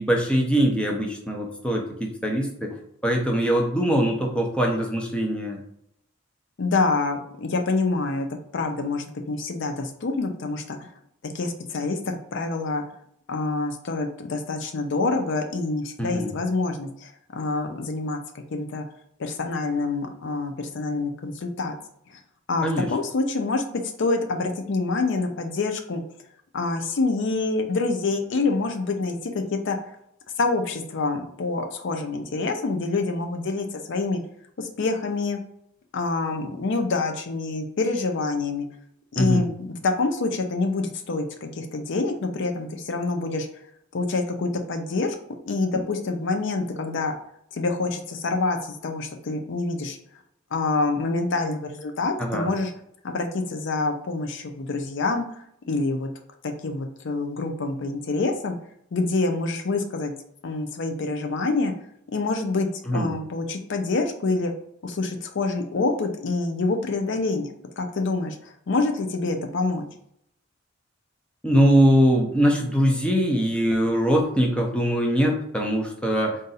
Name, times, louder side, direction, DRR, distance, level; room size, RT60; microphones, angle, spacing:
voice 1, 0.0-2.8 3.0-5.6 16.0-16.3 22.6-22.9 39.2-39.5 52.2-52.5 62.9-63.1 71.4-76.4, equal, 5° left, 1 dB, 0.7 m, -22 dB
voice 2, 6.6-8.3 8.5-10.9 11.2-12.8 13.3-18.2 18.5-18.8 19.2-21.8 22.1-22.2 22.5-26.0 26.5-29.8 30.4-34.2 34.6-35.4 35.9-38.7 39.1-43.5 43.9-45.2 45.5-47.2 47.5-50.0 50.5-52.7 53.0-56.1 56.4-58.5 58.9-60.1 60.4-61.7 62.1-64.5 64.8-69.9, left 3 dB, 65° left, 5 dB, 0.5 m, -26 dB
3.9 x 2.5 x 4.0 m, 0.72 s
head